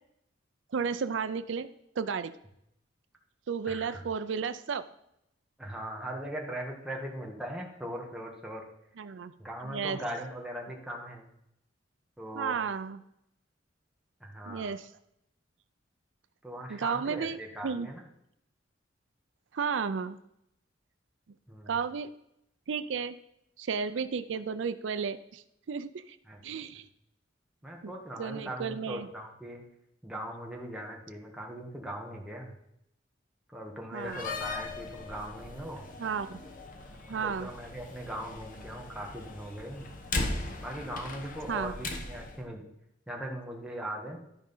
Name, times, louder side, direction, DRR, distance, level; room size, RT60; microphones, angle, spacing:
voice 1, 0.7-1.7 2.0-2.4 3.5-4.8 9.0-9.3 9.6-10.0 12.4-13.0 14.5-14.9 16.7-17.9 19.5-20.2 21.7-22.1 22.7-23.2 23.6-26.2 26.4-26.9 27.8-27.9 28.2-29.1 33.9-34.2 36.0-36.4 37.1-37.5 41.5-41.7, right 6 dB, 80° right, 12 dB, 0.5 m, -33 dB
voice 2, 5.6-8.6 9.4-11.3 12.2-12.6 14.2-14.7 16.4-18.0 21.5-21.7 26.3-26.4 27.6-29.6 30.0-32.5 33.5-35.8 37.1-39.9 40.6-42.7 43.1-44.2, right 1 dB, 5° right, -1 dB, 1.7 m, -40 dB
Slam, 34.0-42.4, left 2 dB, 45° left, 1.2 m, -39 dB
12.5 x 5.1 x 5.5 m, 0.78 s
head